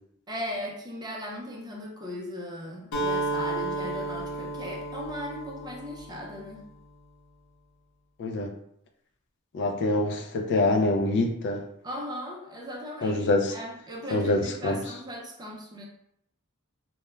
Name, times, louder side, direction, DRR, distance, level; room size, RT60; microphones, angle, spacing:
voice 1, 0.3-6.7 11.8-15.9, equal, 20° right, 0 dB, 0.4 m, -38 dB
Acoustic guitar, 2.9-6.8, right 2 dB, 65° left, 0.8 m, -33 dB
voice 2, 8.2-8.5 9.5-11.7 13.0-13.6 14.1-14.8, left 2 dB, 50° left, 3 dB, 0.3 m, -25 dB
2.3 x 2.1 x 3.0 m, 0.74 s
head